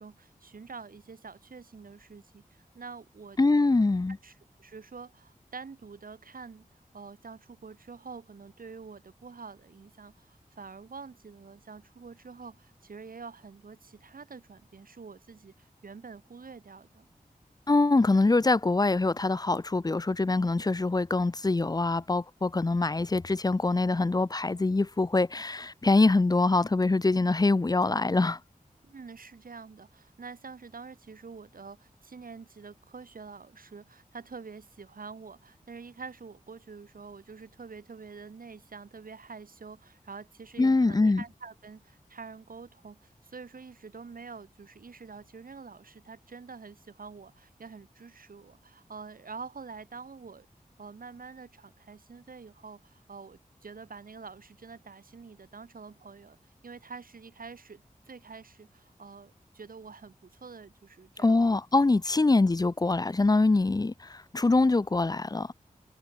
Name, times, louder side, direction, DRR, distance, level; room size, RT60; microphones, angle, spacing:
voice 1, 0.0-3.4 4.2-6.7 6.9-17.1 28.8-50.5 50.8-61.6, right 5 dB, 80° right, 2.1 m, -46 dB
voice 2, 3.4-4.2 17.7-28.4 40.6-41.2 61.2-65.5, left 3 dB, 25° left, 0.6 m, -24 dB
wide cardioid pair, 70°, 15 cm